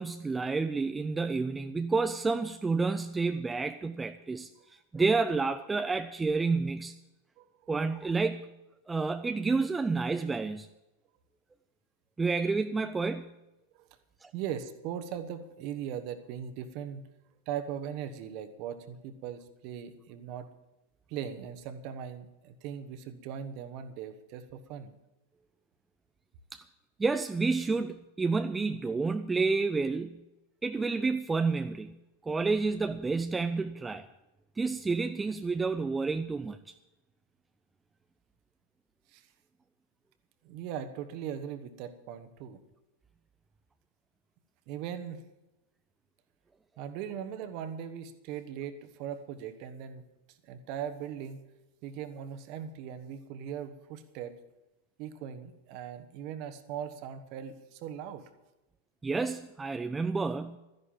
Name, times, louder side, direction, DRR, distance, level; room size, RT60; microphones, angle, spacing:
voice 1, 0.0-6.9 7.7-8.5 8.9-10.7 12.2-13.3 14.2-14.3 26.5-26.6 27.0-30.2 30.6-32.0 32.2-34.1 34.6-36.7 59.0-60.6, right 4 dB, 10° right, 9 dB, 0.5 m, -30 dB
voice 2, 14.3-17.0 17.5-20.5 21.1-24.9 39.1-39.3 40.4-42.6 44.7-45.2 46.8-50.0 50.4-51.4 51.8-54.4 55.0-58.3, right 9 dB, 45° right, 10 dB, 1.3 m, -39 dB
13.0 x 10.5 x 7.4 m, 0.99 s
figure-of-eight pair, 90°, 0 cm